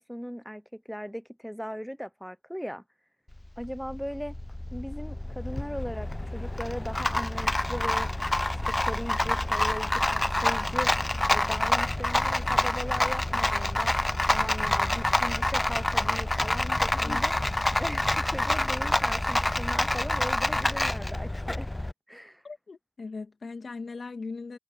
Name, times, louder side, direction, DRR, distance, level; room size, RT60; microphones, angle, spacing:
voice 1, 0.0-2.8 3.6-4.4 4.7-8.1 8.7-10.9 11.3-13.9 14.2-17.3 17.8-21.7 22.1-22.4, equal, ahead, 0.8 m, -38 dB
Rattle, 3.3-21.9, left 1 dB, 15° left, 0.4 m, -27 dB
voice 2, 16.7-17.2 22.4-24.6, left 4 dB, 50° left, 2.2 m, -39 dB
wide cardioid pair, 105°, 0 cm